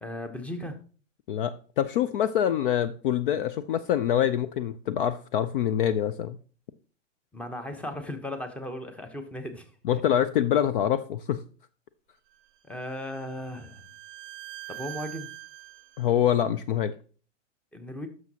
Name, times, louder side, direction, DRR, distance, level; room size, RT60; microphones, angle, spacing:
voice 1, 0.0-0.8 7.3-10.0 12.6-13.8 14.7-15.3 17.7-18.1, left 1 dB, 5° left, 8 dB, 0.9 m, -36 dB
voice 2, 1.3-6.4 9.8-11.4 16.0-16.9, left 10 dB, 45° left, 13 dB, 0.5 m, -25 dB
Bowed string instrument, 12.3-16.1, right 19 dB, 30° right, 0.8 m, -44 dB
12.0 x 6.2 x 2.8 m, 0.39 s
hypercardioid pair, 115°, 38 cm